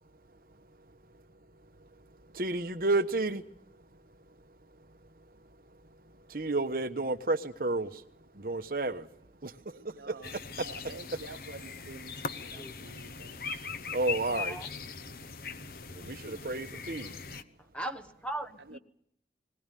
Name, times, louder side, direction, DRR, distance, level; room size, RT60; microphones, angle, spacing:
voice 1, 2.3-3.4 6.3-8.0 8.4-9.0 9.4-9.5 13.9-14.6 15.9-17.2, right 2 dB, 55° right, 9 dB, 1.1 m, -31 dB
voice 2, 9.7-10.3 10.6-12.1 12.4-13.7 16.0-16.4 17.0-17.4 18.7-18.8, right 4 dB, 80° right, 12 dB, 0.8 m, -49 dB
sound 1, 10.2-17.4, left 6 dB, 55° left, 1.0 m, -40 dB
voice 3, 14.2-14.7 17.7-18.8, right 1 dB, 5° left, 9 dB, 1.1 m, -39 dB
20.5 x 19.5 x 9.2 m, 0.74 s
head